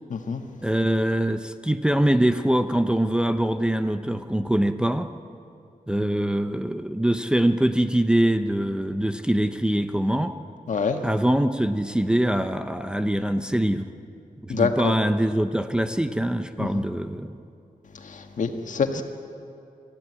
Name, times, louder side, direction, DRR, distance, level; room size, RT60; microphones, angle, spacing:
voice 1, 0.1-0.4 10.7-11.0 14.5-15.0 16.6-16.8 18.0-19.0, left 5 dB, 60° left, 5 dB, 1.7 m, -26 dB
voice 2, 0.6-5.1 5.9-10.3 11.0-13.9 14.4-17.3, right 1 dB, 5° right, 7 dB, 0.6 m, -23 dB
24.5 x 15.0 x 9.7 m, 2.6 s
wide cardioid pair, 150°, 15 cm